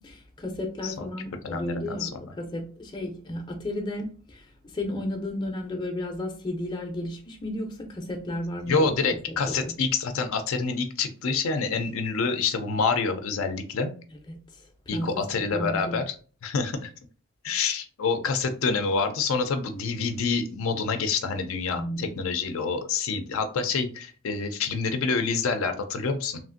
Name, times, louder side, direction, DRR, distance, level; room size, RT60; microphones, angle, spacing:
voice 1, 0.0-4.5 4.7-8.9 9.5-9.7 14.3-14.4 14.9-15.1 15.4-16.0 21.7-22.1, left 1 dB, 20° left, 0.5 m, -33 dB
voice 2, 0.8-2.2 8.7-13.9 14.9-16.2 16.4-16.9 17.4-26.4, left 4 dB, 70° left, 0.4 m, -27 dB
3.1 x 2.5 x 2.5 m
head